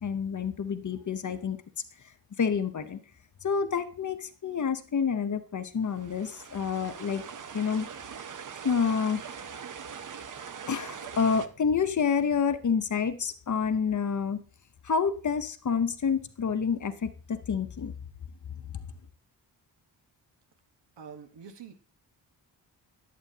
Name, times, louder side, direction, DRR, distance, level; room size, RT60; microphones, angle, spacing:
voice 1, 0.0-1.6 2.4-3.0 3.4-7.2 7.5-7.9 8.6-9.2 10.7-14.4 14.8-17.9, left 6 dB, 45° left, 0.8 m, -28 dB
sound 1, 5.9-11.5, right 7 dB, 45° right, 0.7 m, -42 dB
voice 2, 21.0-21.7, right 6 dB, 75° right, 1.2 m, -45 dB
11.0 x 8.3 x 2.8 m
cardioid pair, 75°, 43 cm